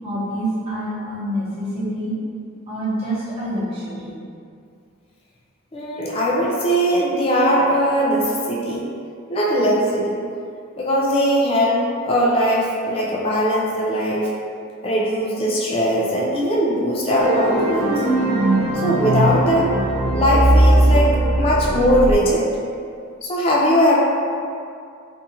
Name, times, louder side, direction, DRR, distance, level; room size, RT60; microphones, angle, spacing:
voice 1, 0.0-2.2 2.7-4.1, right 1 dB, 30° right, -11 dB, 0.9 m, -26 dB
voice 2, 5.7-8.9 9.3-10.2 10.8-14.3 14.8-18.0 18.8-19.8 20.1-22.5 23.2-24.0, equal, 25° left, -4 dB, 0.3 m, -20 dB
sound 1, 17.1-22.1, right 1 dB, 70° right, 0.4 m, -18 dB
2.6 x 2.4 x 2.7 m, 2.4 s
head